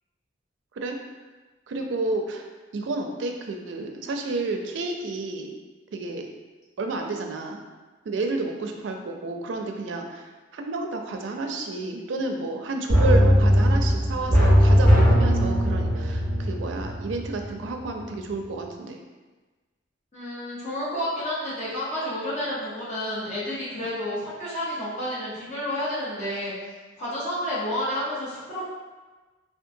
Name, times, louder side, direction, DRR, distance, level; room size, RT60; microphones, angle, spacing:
voice 1, 1.7-2.4 2.7-5.5 5.9-6.3 6.8-7.6 8.1-19.0, right 2 dB, 80° right, 3 dB, 0.4 m, -30 dB
sound 1, 12.9-17.6 17.9-18.0, equal, 15° left, 1.4 m, -19 dB
voice 2, 20.1-26.5 27.0-28.7, left 1 dB, 40° left, -9 dB, 1.0 m, -30 dB
3.7 x 2.4 x 2.6 m, 1.3 s
head